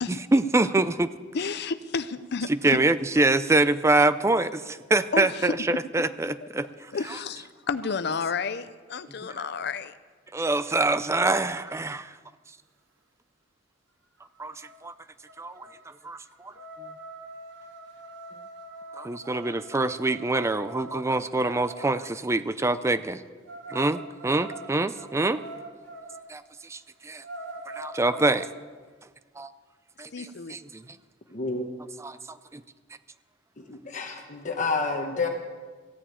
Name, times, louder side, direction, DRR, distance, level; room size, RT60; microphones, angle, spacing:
voice 1, 0.3-1.1 2.6-6.9 9.3-9.5 10.3-12.1 14.4-14.5 14.8-14.9 15.4-15.7 16.0-16.5 19.0-23.2 23.7-25.4 26.3-26.4 26.7-27.2 27.7-28.5 29.4-29.5 30.0-30.8 32.0-32.6, right 2 dB, 15° right, 13 dB, 0.4 m, -25 dB
voice 2, 1.3-2.8 5.1-5.5 6.9-9.9 30.1-30.6, left 5 dB, 60° left, 14 dB, 0.6 m, -31 dB
sound 1, 14.2-14.3 14.6-14.9 15.3-22.2 23.5-26.3 26.7-26.8 27.1-28.5, right 1 dB, 85° right, 1.3 m, -43 dB
voice 3, 31.3-31.7 33.6-35.3, left 3 dB, 40° left, 3 dB, 1.2 m, -29 dB
15.5 x 7.1 x 8.7 m, 1.5 s
head